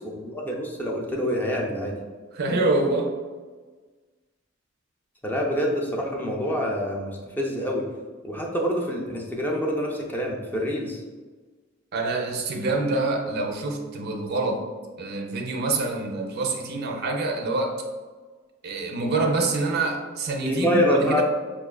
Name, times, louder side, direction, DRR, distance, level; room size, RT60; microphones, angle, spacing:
voice 1, 0.1-2.0 5.2-7.8 8.2-11.0 20.4-21.2, equal, 10° left, -1 dB, 0.4 m, -26 dB
voice 2, 2.3-3.1 11.9-14.7 15.0-17.8 18.6-21.2, right 2 dB, 55° right, 2 dB, 0.4 m, -26 dB
4.9 x 2.3 x 2.2 m, 1.4 s
head